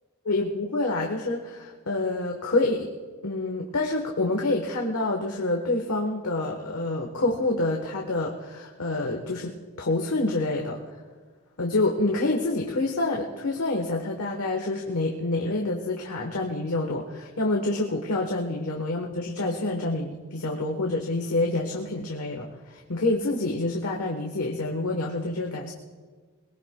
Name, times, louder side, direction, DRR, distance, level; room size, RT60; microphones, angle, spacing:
voice 1, 0.3-2.9 3.2-10.8 11.6-25.7, left 2 dB, 85° left, 0 dB, 1.2 m, -27 dB
22.0 x 19.0 x 2.3 m, 1.5 s
head